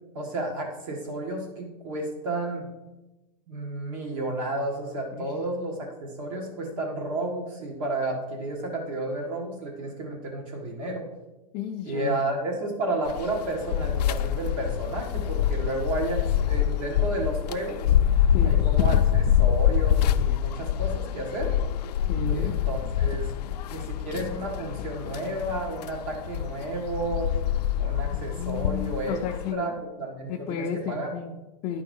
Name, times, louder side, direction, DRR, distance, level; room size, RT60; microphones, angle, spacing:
voice 1, 0.1-2.7 3.5-11.1 11.8-17.9 18.4-21.6 22.3-23.3 23.7-27.3 27.8-29.2 29.5-31.1, right 2 dB, 55° right, 0 dB, 1.8 m, -32 dB
voice 2, 11.5-12.2 18.3-18.6 22.1-22.5 28.1-29.8 30.3-31.8, left 6 dB, 25° left, 0 dB, 0.5 m, -33 dB
sound 1, 13.1-29.5, left 10 dB, 80° left, 0.4 m, -26 dB
10.5 x 4.7 x 5.3 m, 1.0 s
supercardioid pair, 165°, 20 cm